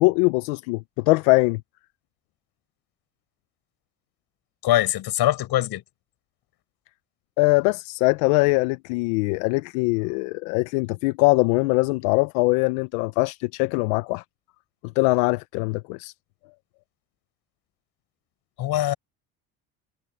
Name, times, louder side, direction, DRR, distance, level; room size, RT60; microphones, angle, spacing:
voice 1, 0.0-1.6 7.4-14.2 15.0-16.1, left 25 dB, 85° left, 0.8 m, -22 dB
voice 2, 4.6-5.8 18.6-18.9, left 14 dB, 65° left, 5.4 m, -22 dB
supercardioid pair, 70°, 41 cm